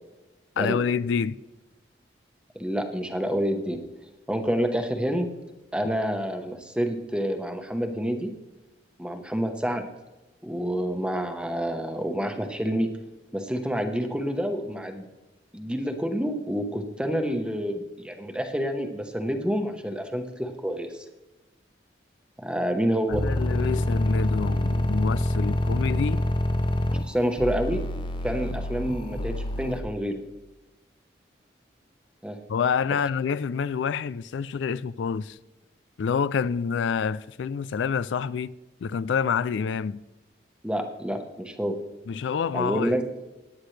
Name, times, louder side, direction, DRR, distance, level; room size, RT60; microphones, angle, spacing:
voice 1, 0.6-1.4 23.1-26.2 32.5-35.4 36.0-38.5 38.8-40.0 42.1-42.9, left 6 dB, 85° left, 0.3 m, -27 dB
voice 2, 2.5-3.8 4.3-5.3 5.7-8.3 9.0-9.9 10.4-12.9 13.3-15.1 15.5-21.1 22.4-23.2 27.0-27.8 28.2-30.2 32.2-32.4 40.6-41.8 42.5-43.0, equal, 5° right, 1.0 m, -28 dB
sound 1, 23.1-29.8, left 1 dB, 25° left, 0.7 m, -26 dB
18.0 x 10.0 x 3.3 m
head